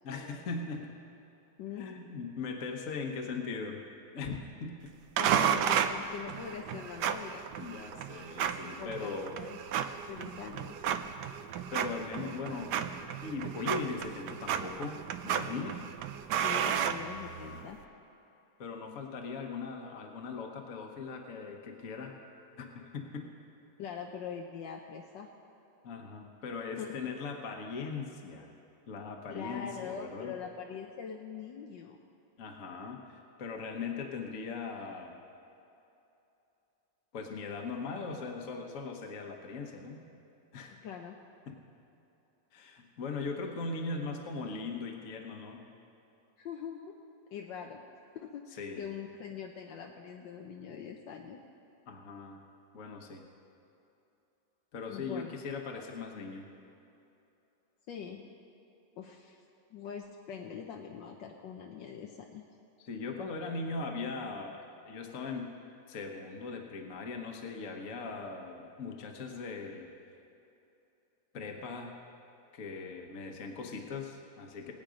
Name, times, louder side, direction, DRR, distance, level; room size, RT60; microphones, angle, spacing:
voice 1, 0.0-0.9 1.7-3.8 4.1-4.9 7.6-9.4 11.7-12.7 13.2-15.8 18.6-22.2 22.6-23.3 25.8-28.5 28.9-30.3 32.4-35.1 37.1-40.0 40.5-40.8 41.5-41.6 42.5-45.6 48.6-48.8 51.9-52.4 52.7-53.2 54.7-56.5 62.8-65.5 65.9-69.9 71.3-72.0 72.5-74.7, left 4 dB, 50° left, 2 dB, 1.4 m, -39 dB
voice 2, 5.2-7.4 8.8-10.8 16.4-17.8 23.8-25.3 26.8-27.1 29.3-32.0 40.8-41.2 46.4-46.9 47.3-47.8 48.1-51.4 54.9-55.3 55.7-55.8 57.9-58.2 59.0-59.4 59.7-62.5, left 7 dB, 80° left, 1 dB, 1.5 m, -43 dB
sound 1, 5.2-17.7, right 9 dB, 75° right, 1.2 m, -33 dB
20.5 x 8.9 x 5.1 m, 2.9 s
omnidirectional pair, 2.0 m